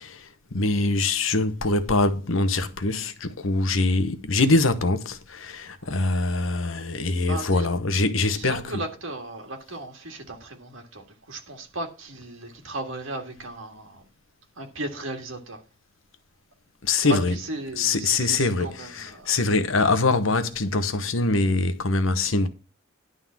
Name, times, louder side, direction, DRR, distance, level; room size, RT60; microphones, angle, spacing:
voice 1, 0.0-8.8 16.8-17.3 17.8-22.5, left 3 dB, 75° left, 1.0 m, -23 dB
voice 2, 7.3-7.7 8.4-14.0 14.6-15.6 17.0-19.3, right 2 dB, 70° right, 1.8 m, -36 dB
11.0 x 3.8 x 7.3 m
head